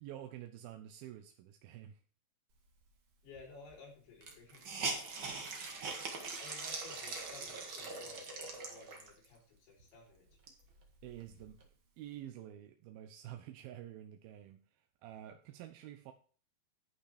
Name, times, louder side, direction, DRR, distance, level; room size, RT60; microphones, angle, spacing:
voice 1, 0.0-2.0 11.0-11.6 12.0-16.1, right 12 dB, 75° right, 6 dB, 2.3 m, -49 dB
voice 2, 3.2-5.4 6.4-10.3, left 3 dB, 85° left, -3 dB, 6.4 m, -56 dB
Hiss, 3.4-3.5 3.7-3.8 4.2-9.2 9.8-9.9 10.3-11.6, right 4 dB, 50° right, 1.6 m, -42 dB
11.5 x 5.8 x 5.0 m, 0.40 s
omnidirectional pair, 5.0 m